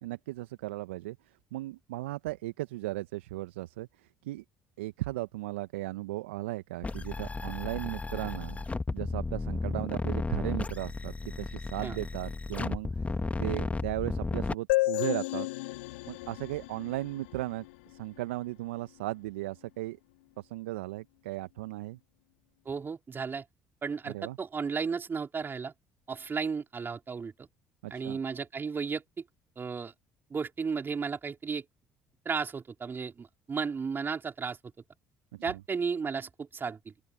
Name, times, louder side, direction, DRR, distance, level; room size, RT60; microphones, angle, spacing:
voice 1, 0.0-1.2 1.5-4.4 4.8-8.6 8.9-15.5 16.1-20.0 20.4-22.0 24.1-24.4 27.8-28.2 35.3-35.6, right 18 dB, 80° right, 1.3 m, -36 dB
sound 1, 6.8-14.5, left 3 dB, 20° left, 2.1 m, -34 dB
sound 2, 14.7-18.2, left 22 dB, 75° left, 3.1 m, -32 dB
voice 2, 22.7-23.4 23.8-25.7 26.1-27.5 27.9-29.0 29.6-29.9 30.3-31.6 32.2-34.6 35.4-36.9, right 5 dB, 35° right, 4.3 m, -34 dB
open air
hypercardioid pair, 55°, 6 cm